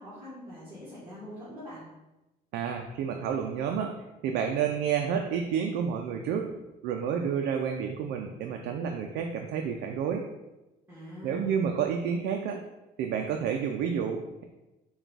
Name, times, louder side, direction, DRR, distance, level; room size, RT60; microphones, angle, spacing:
voice 1, 0.0-1.8 10.9-11.5, left 1 dB, 15° right, -11 dB, 1.5 m, -43 dB
voice 2, 2.5-4.0 4.2-6.5 6.8-10.3 11.2-12.6 13.0-14.4, right 7 dB, 80° right, 3 dB, 0.4 m, -30 dB
4.4 x 2.3 x 3.9 m, 1.0 s
cardioid pair, 110°, 17 cm